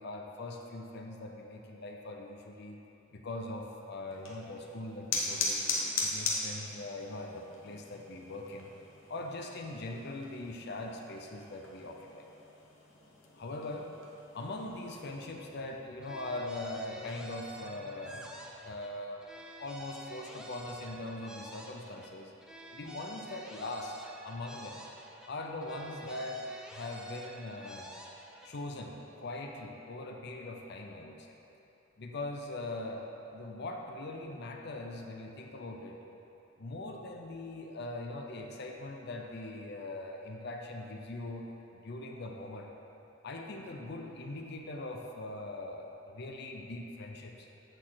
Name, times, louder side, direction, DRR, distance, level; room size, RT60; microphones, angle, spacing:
voice 1, 0.0-2.8 3.1-5.6 6.0-8.7 9.1-12.2 13.3-13.9 14.3-18.3 18.6-19.2 19.6-22.3 22.7-23.9 24.2-24.8 25.3-27.9 28.4-31.3 32.0-33.0 33.3-36.0 36.6-41.5 41.7-42.7 43.2-47.5, left 2 dB, 60° left, 2 dB, 0.6 m, -41 dB
sound 1, 4.1-15.2, left 3 dB, 90° left, 1.2 m, -39 dB
sound 2, 16.0-18.9 19.2-22.1 22.4-25.3 25.6-28.5, right 1 dB, 5° right, 0.5 m, -49 dB
8.0 x 6.4 x 4.0 m, 2.9 s
head